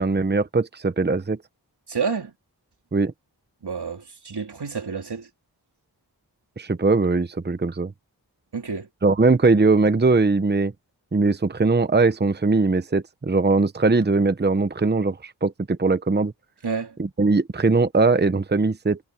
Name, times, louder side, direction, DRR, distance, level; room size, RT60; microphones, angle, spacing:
voice 1, 0.0-1.4 2.9-3.1 6.6-7.9 9.0-10.7 11.1-16.3 17.0-19.0, right 3 dB, 25° right, 0.8 m, -20 dB
voice 2, 1.9-2.3 3.6-5.3 8.5-8.9 16.6-16.9, right 5 dB, 85° right, 3.5 m, -29 dB
wide cardioid pair, 70°, 39 cm